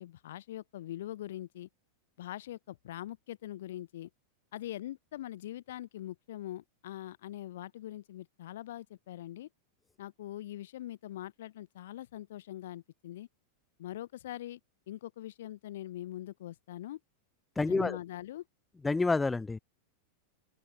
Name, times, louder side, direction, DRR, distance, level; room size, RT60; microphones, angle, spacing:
voice 1, 0.0-1.7 2.2-4.1 4.5-9.5 10.0-13.3 13.8-14.6 14.9-17.0 17.6-18.4, left 13 dB, 80° left, 6.9 m, -42 dB
voice 2, 17.6-18.0 18.8-19.6, left 3 dB, 10° left, 2.9 m, -28 dB
open air
supercardioid pair, 145°, 0 cm